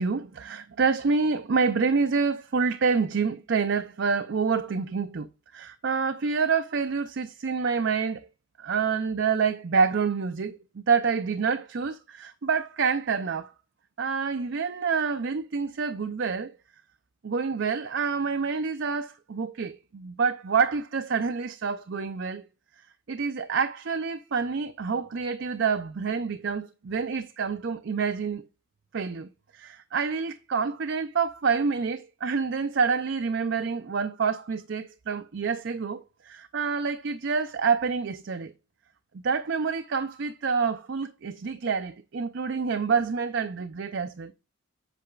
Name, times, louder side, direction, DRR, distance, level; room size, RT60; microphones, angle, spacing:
voice 1, 0.0-8.2 8.6-13.5 14.0-16.5 17.2-22.4 23.1-28.5 28.9-38.5 39.2-44.3, right 5 dB, 55° right, 0.5 m, -27 dB
8.2 x 6.6 x 2.3 m
head